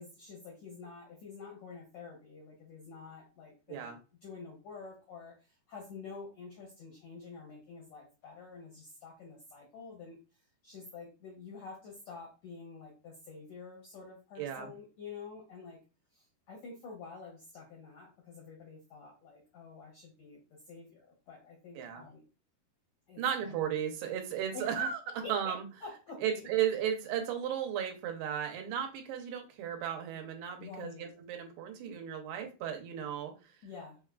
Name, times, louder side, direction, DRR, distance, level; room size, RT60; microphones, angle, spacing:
voice 1, 0.0-15.8 16.1-22.2 23.1-23.7 24.5-24.9 25.2-25.5 25.8-26.5 30.6-31.1 33.6-34.0, left 4 dB, 80° left, -2 dB, 1.5 m, -48 dB
voice 2, 14.4-14.7 21.8-22.0 23.2-25.0 25.3-25.6 26.2-33.5, right 9 dB, 85° right, 4 dB, 2.7 m, -35 dB
6.1 x 2.2 x 2.3 m, 0.31 s
omnidirectional pair, 4.5 m